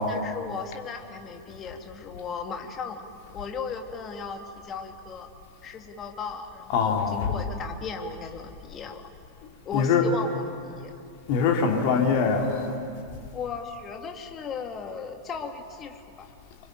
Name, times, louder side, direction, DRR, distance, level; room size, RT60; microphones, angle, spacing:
voice 1, 0.1-3.1 3.3-5.3 5.6-9.0 9.6-10.9 13.3-16.3, left 5 dB, 25° left, 4 dB, 2.5 m, -36 dB
voice 2, 6.7-7.4 9.7-10.1 11.3-12.8, left 5 dB, 45° left, 2 dB, 3.0 m, -23 dB
25.5 x 23.5 x 9.2 m, 2.4 s
figure-of-eight pair, 90°, 0 cm